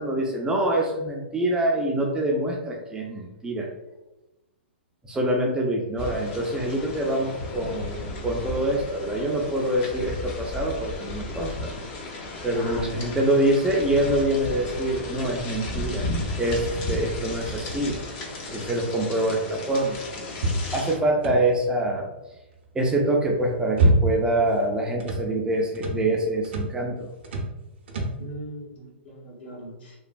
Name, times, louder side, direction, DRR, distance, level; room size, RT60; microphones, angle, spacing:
voice 1, 0.0-3.7 5.1-11.7 12.4-16.1 16.4-18.0 18.5-20.0 20.7-22.1 22.7-27.1, right 1 dB, 10° right, 0 dB, 0.4 m, -25 dB
sound 1, 6.0-21.0, left 2 dB, 35° left, 0.6 m, -34 dB
voice 2, 12.5-13.1 28.2-29.9, equal, 65° left, -4 dB, 1.2 m, -37 dB
sound 2, 20.3-21.7 23.2-24.4 24.7-25.3 25.7-26.0 26.4-26.8 27.2-27.6 27.9-28.2, right 2 dB, 65° right, 0.6 m, -25 dB
3.0 x 2.1 x 2.5 m, 1.0 s
hypercardioid pair, 125°, 6 cm